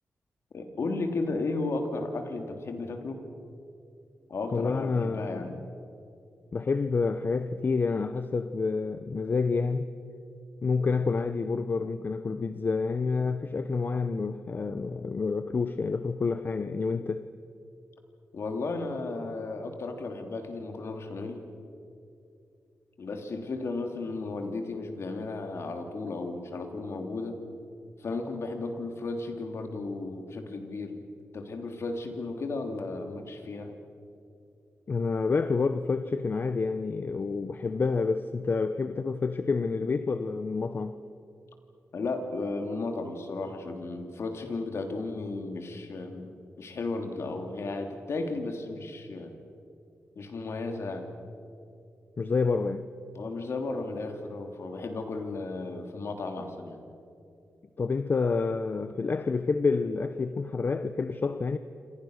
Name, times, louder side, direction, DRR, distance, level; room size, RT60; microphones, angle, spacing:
voice 1, 0.5-3.2 4.3-5.5 18.3-21.4 23.0-27.4 28.0-31.0 31.3-33.7 41.9-49.3 50.1-51.1 53.1-56.8, left 3 dB, 60° left, 3.0 m, -34 dB
voice 2, 4.5-5.6 6.5-9.9 10.6-17.3 34.9-40.9 52.2-52.9 57.8-61.6, left 4 dB, 40° left, 0.8 m, -28 dB
27.5 x 27.0 x 6.6 m
wide cardioid pair, 110°, 5 cm